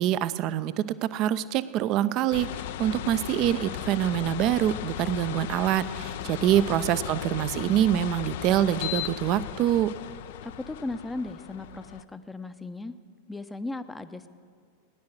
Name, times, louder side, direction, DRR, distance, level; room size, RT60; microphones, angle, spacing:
voice 1, 0.0-9.9, right 11 dB, 40° right, 15 dB, 0.5 m, -25 dB
sound 1, 2.3-12.0, left 12 dB, 55° left, 0.5 m, -36 dB
voice 2, 6.2-6.6 10.4-12.9 13.3-14.3, left 2 dB, 10° left, 11 dB, 0.7 m, -37 dB
17.0 x 10.5 x 8.0 m, 2.2 s
figure-of-eight pair, 90°, 0 cm